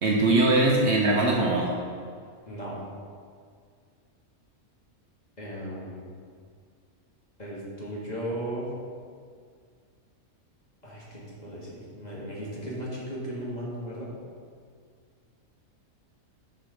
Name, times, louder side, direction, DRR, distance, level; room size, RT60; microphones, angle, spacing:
voice 1, 0.0-1.8, right 2 dB, 55° right, -1 dB, 0.9 m, -21 dB
voice 2, 5.4-6.1 7.4-8.7 10.8-14.1, right 1 dB, 30° left, -6 dB, 1.7 m, -36 dB
7.3 x 4.7 x 4.9 m, 2.1 s
omnidirectional pair, 1.5 m